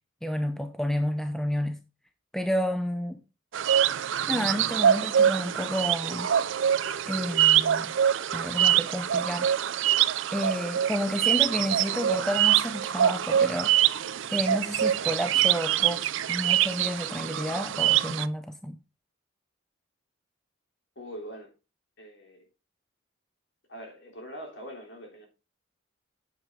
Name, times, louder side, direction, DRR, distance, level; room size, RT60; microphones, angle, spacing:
voice 1, 0.2-1.8 2.3-3.2 4.3-6.3 7.1-8.0 8.3-9.5 10.3-13.7 14.3-18.8, equal, ahead, 0.6 m, -30 dB
sound 1, 3.5-18.3, right 10 dB, 65° right, 0.4 m, -24 dB
voice 2, 21.0-21.5 22.0-22.5 23.7-25.3, equal, 60° left, 3.5 m, -42 dB
9.0 x 7.3 x 3.7 m
head